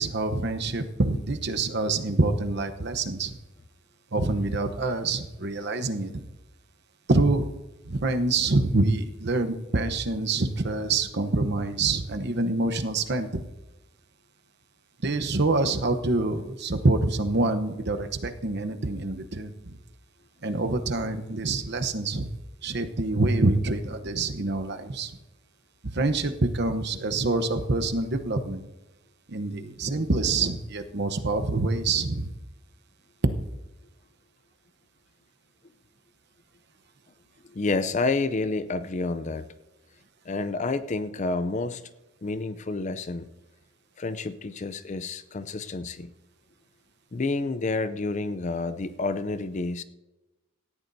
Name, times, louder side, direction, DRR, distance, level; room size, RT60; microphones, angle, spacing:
voice 1, 0.0-3.4 4.1-6.2 7.1-7.5 7.9-13.4 15.0-19.8 20.4-22.3 22.6-25.1 25.8-28.6 29.3-32.3, right 2 dB, 55° right, 8 dB, 0.9 m, -26 dB
voice 2, 37.4-39.5 40.2-41.8 42.2-43.3 44.0-46.1 47.1-49.8, left 3 dB, 35° left, 13 dB, 0.5 m, -29 dB
18.0 x 13.5 x 2.7 m, 1.1 s
head